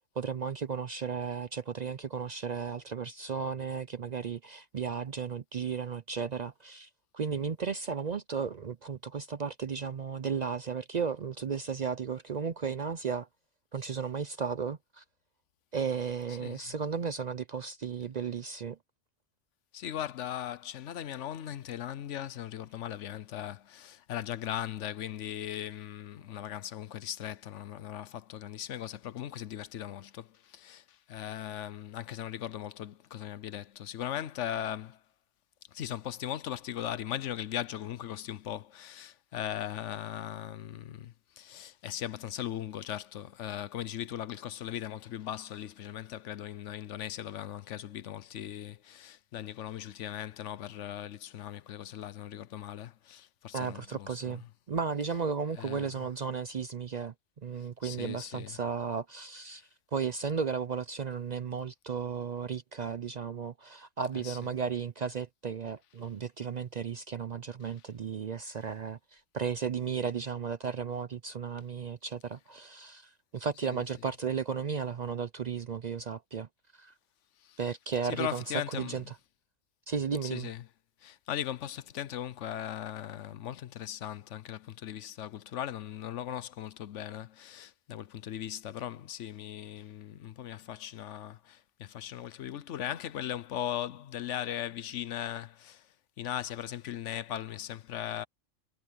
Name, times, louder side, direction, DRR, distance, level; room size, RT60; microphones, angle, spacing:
voice 1, 0.2-13.3 13.7-15.0 15.7-18.8 53.5-57.1 57.4-59.6 59.9-76.5 76.7-76.9 77.6-78.4 78.8-79.0 79.9-80.5, right 6 dB, 50° right, 0.5 m, -34 dB
voice 2, 16.4-16.7 19.7-35.0 35.7-54.4 55.6-56.0 57.6-58.6 59.5-59.6 64.2-64.4 73.7-73.8 77.4-77.6 78.0-79.0 80.2-80.6 81.0-98.2, left 11 dB, 80° left, 1.0 m, -39 dB
omnidirectional pair, 1.2 m